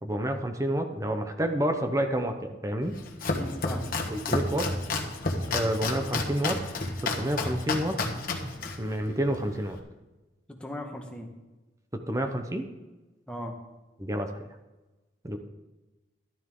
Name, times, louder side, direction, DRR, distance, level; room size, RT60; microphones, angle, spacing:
voice 1, 0.0-2.9 4.1-4.7 5.5-6.6 7.0-8.0 8.8-9.8 12.1-12.7 14.0-14.3 15.2-15.4, right 1 dB, 20° right, 5 dB, 0.8 m, -29 dB
Domestic sounds home sounds, 2.8-9.8, left 3 dB, 50° left, 1.3 m, -31 dB
voice 2, 3.3-3.9 10.5-11.3 13.3-13.6, left 1 dB, 5° left, 1 dB, 1.5 m, -38 dB
13.0 x 12.0 x 3.8 m, 1.1 s
head